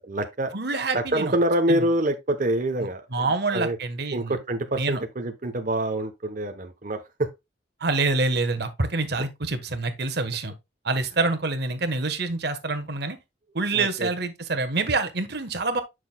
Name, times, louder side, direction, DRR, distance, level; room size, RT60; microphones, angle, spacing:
voice 1, 0.0-0.5 0.9-3.8 4.1-7.3 9.1-9.2 13.7-14.1, right 1 dB, 50° right, 1.0 m, -26 dB
voice 2, 0.5-1.3 1.7-1.8 3.1-4.3 4.8-5.0 7.8-10.5 10.8-13.2 13.5-15.8, right 3 dB, 65° right, 1.4 m, -26 dB
9.5 x 6.2 x 2.3 m
head